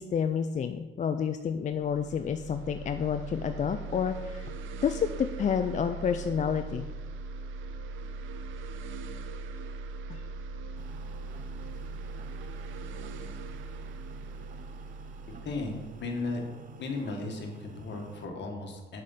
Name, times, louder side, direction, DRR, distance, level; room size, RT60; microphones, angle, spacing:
voice 1, 0.0-4.5 4.8-6.8 10.1-10.2, left 7 dB, 40° left, 8 dB, 0.4 m, -29 dB
sound 1, 1.6-17.1, right 3 dB, 85° right, 0.6 m, -40 dB
sound 2, 10.8-18.3, right 5 dB, 40° right, 0.7 m, -50 dB
voice 2, 15.2-16.4 16.8-19.0, left 3 dB, 65° left, 3 dB, 1.5 m, -36 dB
6.3 x 5.1 x 5.7 m, 1.3 s
cardioid pair, 90°, 20 cm